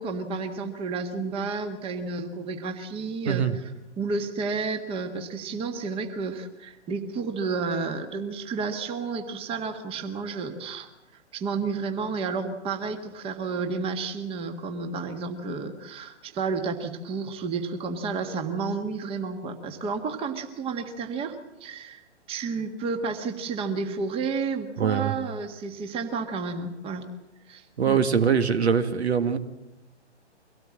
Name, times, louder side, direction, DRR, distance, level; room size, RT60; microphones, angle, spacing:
voice 1, 0.0-3.7 4.0-10.9 11.3-27.1 27.5-28.0, right 4 dB, 15° right, 6 dB, 1.6 m, -31 dB
voice 2, 3.3-3.6 24.8-25.1 27.8-29.4, right 7 dB, 65° right, 9 dB, 1.9 m, -23 dB
24.0 x 17.5 x 7.6 m, 0.98 s
figure-of-eight pair, 125°, 35 cm